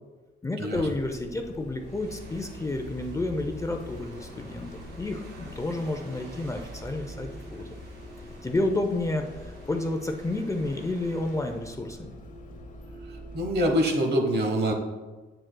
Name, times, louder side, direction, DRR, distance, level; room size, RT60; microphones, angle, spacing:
voice 1, 0.4-7.7 8.4-12.2, left 2 dB, 15° left, 4 dB, 0.6 m, -30 dB
Bus, 0.7-13.7, left 1 dB, 40° left, 0.9 m, -44 dB
sound 1, 1.8-11.8, right 1 dB, 90° right, 2.1 m, -50 dB
voice 2, 13.1-14.7, equal, 55° right, 3 dB, 1.2 m, -25 dB
7.6 x 7.5 x 2.2 m, 1.2 s
cardioid pair, 90°, 20 cm